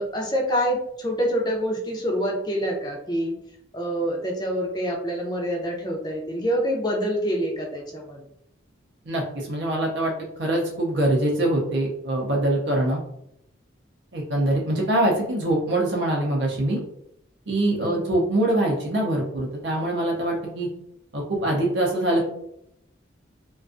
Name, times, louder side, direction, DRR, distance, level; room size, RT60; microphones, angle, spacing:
voice 1, 0.0-3.3 3.7-8.2 17.8-18.0, equal, 20° left, 0 dB, 0.4 m, -26 dB
voice 2, 9.1-10.1 10.4-13.0 14.1-16.8 17.5-20.7 21.1-22.2, right 1 dB, 65° right, -1 dB, 0.5 m, -23 dB
2.4 x 2.3 x 2.5 m, 0.75 s
head